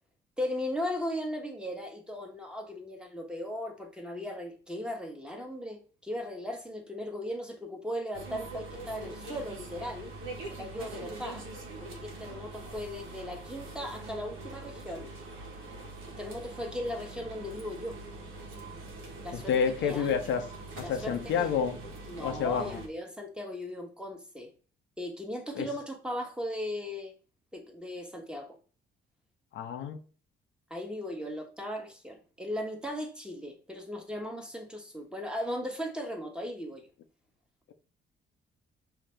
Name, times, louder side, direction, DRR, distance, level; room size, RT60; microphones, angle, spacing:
voice 1, 0.4-10.1 10.5-11.5 11.8-15.1 16.2-18.0 19.2-19.5 19.8-20.1 20.8-21.6 22.1-24.5 25.0-27.1 27.5-28.6 30.7-36.9, left 1 dB, 5° right, 1.2 m, -37 dB
sound 1, 8.1-22.9, right 2 dB, 90° right, 1.2 m, -43 dB
voice 2, 19.3-20.4 20.8-21.8 22.2-22.8 25.6-25.7 29.5-30.0, left 7 dB, 70° left, 0.7 m, -29 dB
5.7 x 2.8 x 3.3 m
cardioid pair, 90°, 20 cm